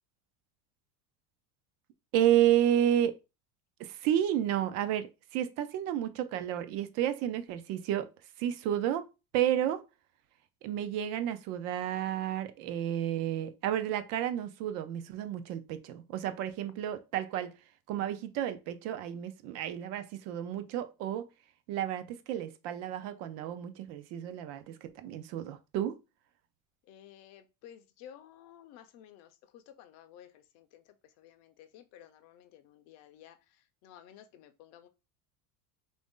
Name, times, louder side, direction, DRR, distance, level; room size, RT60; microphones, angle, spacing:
voice 1, 2.1-3.1 3.8-8.1 8.4-9.1 9.3-9.8 10.6-17.5 17.9-21.3 21.7-25.9, right 11 dB, 40° right, 0.4 m, -31 dB
voice 2, 26.8-34.9, left 10 dB, 40° left, 0.5 m, -54 dB
3.9 x 2.6 x 3.6 m
cardioid pair, 170°, 42 cm